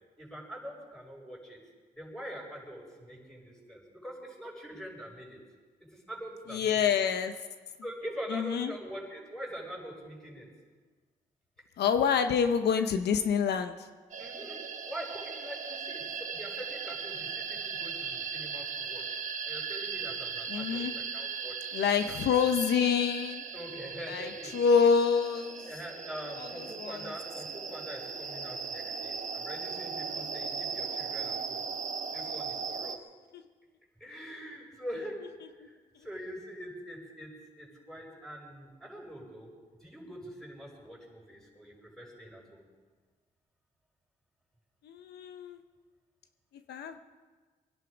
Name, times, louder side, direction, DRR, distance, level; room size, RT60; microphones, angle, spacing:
voice 1, 0.2-1.6 2.0-5.4 5.9-6.7 7.8-10.5 14.2-19.2 19.4-22.2 23.5-24.5 25.6-31.6 32.1-33.0 34.0-35.2 35.6-37.3 37.6-39.5 39.8-42.6, equal, 5° left, -2 dB, 6.1 m, -44 dB
voice 2, 6.5-7.3 8.3-8.7 11.8-13.9 20.5-20.9 21.7-23.4 24.1-25.7 26.4-27.1 33.3-33.4 44.8-45.6 46.7-47.0, left 7 dB, 90° left, 8 dB, 0.9 m, -27 dB
sound 1, 14.1-33.0, right 6 dB, 50° right, 1.3 m, -38 dB
23.5 x 11.0 x 5.1 m, 1.4 s
cardioid pair, 70°, 17 cm